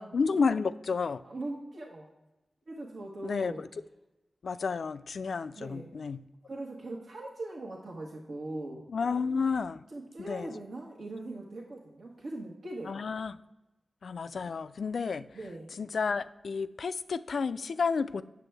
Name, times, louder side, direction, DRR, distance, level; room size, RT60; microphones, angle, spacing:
voice 1, 0.1-1.2 3.2-3.5 4.4-6.2 8.9-9.8 10.3-10.5 12.9-13.3 14.0-15.3 15.8-18.2, left 5 dB, 75° left, 13 dB, 0.3 m, -31 dB
voice 2, 1.2-2.1 2.7-3.6 5.5-6.0 6.4-8.8 9.9-13.0 15.3-15.7, right 2 dB, 80° right, -2 dB, 1.2 m, -41 dB
8.1 x 6.8 x 3.3 m, 0.98 s
wide cardioid pair, 70°, 0 cm